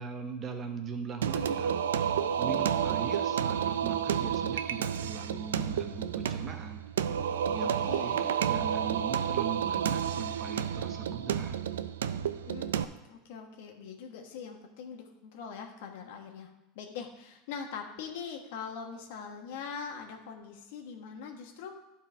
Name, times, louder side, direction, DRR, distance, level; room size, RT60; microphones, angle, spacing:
voice 1, 0.0-1.7 2.4-6.8 7.5-11.5, right 5 dB, 35° right, 5 dB, 1.2 m, -40 dB
Singing, 1.2-12.8, right 8 dB, 90° right, 0.4 m, -30 dB
voice 2, 7.6-8.3 12.5-12.7 13.0-21.8, left 6 dB, 75° left, 3 dB, 1.4 m, -42 dB
11.0 x 4.5 x 4.5 m, 0.95 s
hypercardioid pair, 100°, 0 cm